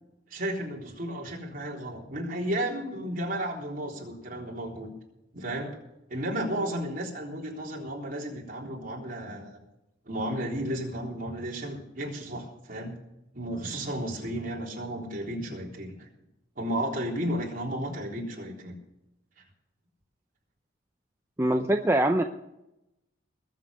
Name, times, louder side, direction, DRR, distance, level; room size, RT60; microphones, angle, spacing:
voice 1, 0.3-4.9 5.3-5.8 6.1-9.6 10.1-12.9 13.3-16.1 16.6-18.7, right 1 dB, 45° right, -1 dB, 3.7 m, -33 dB
voice 2, 21.4-22.2, right 1 dB, 15° right, 4 dB, 0.6 m, -23 dB
21.0 x 7.4 x 6.5 m, 0.89 s
head